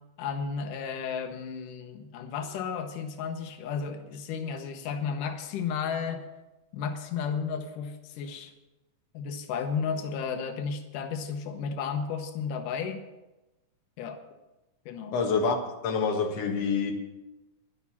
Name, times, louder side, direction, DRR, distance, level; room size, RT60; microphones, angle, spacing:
voice 1, 0.2-6.3 6.7-8.5 9.1-13.0 14.0-14.2 14.9-15.2, left 6 dB, 90° left, 2.6 m, -33 dB
voice 2, 15.1-15.6 15.8-16.9, left 5 dB, 55° left, 2.5 m, -26 dB
11.5 x 11.0 x 7.2 m
omnidirectional pair, 3.6 m